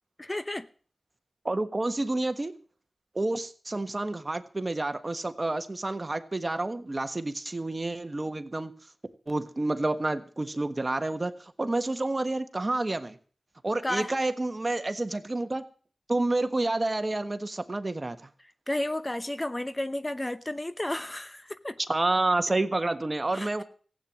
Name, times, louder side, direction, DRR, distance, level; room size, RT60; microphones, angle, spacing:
voice 1, 0.2-0.7 13.8-14.1 18.7-21.8 23.3-23.6, left 1 dB, 25° left, 0.8 m, -32 dB
voice 2, 1.4-2.5 3.1-8.7 9.3-11.3 11.6-13.1 13.6-15.6 16.1-18.2 21.9-23.6, right 2 dB, 35° right, 1.4 m, -29 dB
15.5 x 8.8 x 7.5 m
cardioid pair, 55°, 0 cm